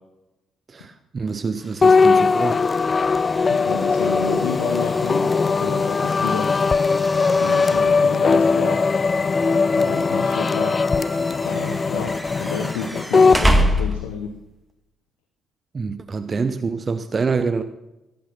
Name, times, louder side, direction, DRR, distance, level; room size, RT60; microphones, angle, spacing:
voice 1, 0.7-2.6 15.7-17.6, right 4 dB, 35° right, 10 dB, 0.8 m, -26 dB
sound 1, 1.6-14.4, equal, 5° right, 1.8 m, -29 dB
sound 2, 1.8-13.4, left 4 dB, 35° left, 0.4 m, -19 dB
voice 2, 3.5-6.5 7.4-8.8 9.7-10.8 11.4-14.3, left 5 dB, 70° left, 7 dB, 0.9 m, -30 dB
17.5 x 8.8 x 5.8 m, 0.97 s
figure-of-eight pair, 45°, 0 cm